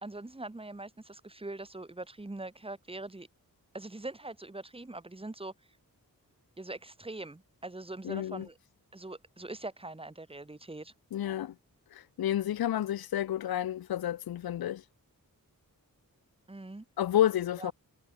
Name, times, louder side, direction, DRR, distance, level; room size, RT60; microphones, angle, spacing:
voice 1, 0.0-3.3 3.7-5.5 6.6-8.6 8.9-10.9 16.5-16.8 17.6-17.7, right 2 dB, 15° right, 1.4 m, -42 dB
voice 2, 8.0-8.5 11.1-11.5 11.9-14.8 17.0-17.7, left 11 dB, 85° left, 0.5 m, -30 dB
wide cardioid pair, 95°, 36 cm